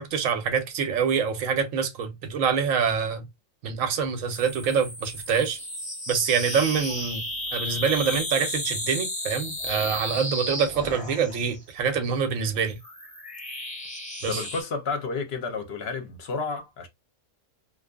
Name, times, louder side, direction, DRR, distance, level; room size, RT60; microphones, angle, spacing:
voice 1, 0.0-3.3 3.6-5.6 6.1-7.2 7.5-12.8 14.2-14.4, right 6 dB, 90° right, 1.1 m, -25 dB
sound 1, 4.3-11.6 12.5-14.6, left 1 dB, 5° left, 0.8 m, -34 dB
voice 2, 14.3-16.9, left 4 dB, 60° left, 0.8 m, -31 dB
2.6 x 2.3 x 2.2 m
omnidirectional pair, 1.3 m